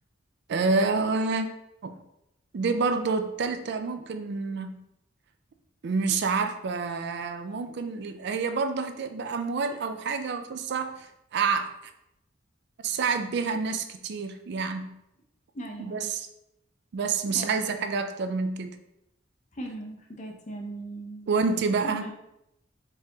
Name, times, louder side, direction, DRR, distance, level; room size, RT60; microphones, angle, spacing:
voice 1, 0.5-1.5 1.8-2.0 2.5-4.8 5.8-11.7 12.8-15.0 15.8-16.3 16.9-18.8 21.3-22.0, right 4 dB, 60° right, 8 dB, 0.4 m, -28 dB
voice 2, 15.5-16.0 17.3-17.6 19.6-21.3 21.8-22.1, right 1 dB, 40° left, 2 dB, 0.7 m, -38 dB
4.7 x 2.9 x 3.4 m, 0.84 s
head